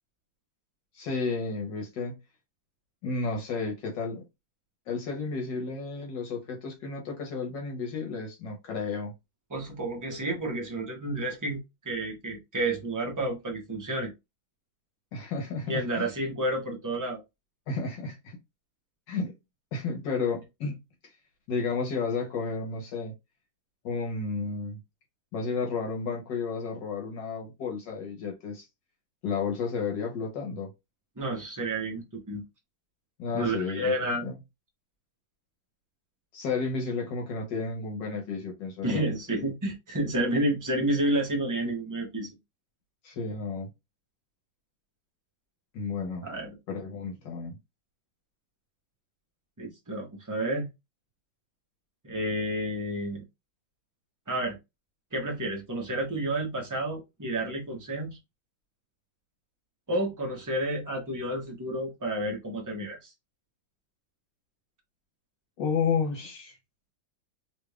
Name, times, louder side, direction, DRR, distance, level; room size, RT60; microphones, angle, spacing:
voice 1, 0.9-2.2 3.0-4.3 4.9-9.1 15.1-16.1 17.7-18.4 19.1-19.3 19.7-20.8 21.5-23.1 23.8-24.8 25.3-28.7 29.2-30.7 33.2-33.9 34.2-34.3 36.3-39.0 43.0-43.7 45.7-46.2 46.7-47.6 65.6-66.6, left 4 dB, 70° left, 1.5 m, -32 dB
voice 2, 9.5-14.1 15.7-17.2 31.2-32.4 33.3-34.2 38.8-42.3 46.2-46.5 49.6-50.7 52.0-53.2 54.3-54.6 55.1-58.2 59.9-63.1, right 1 dB, 25° right, 0.4 m, -30 dB
3.4 x 3.3 x 2.3 m
omnidirectional pair, 2.1 m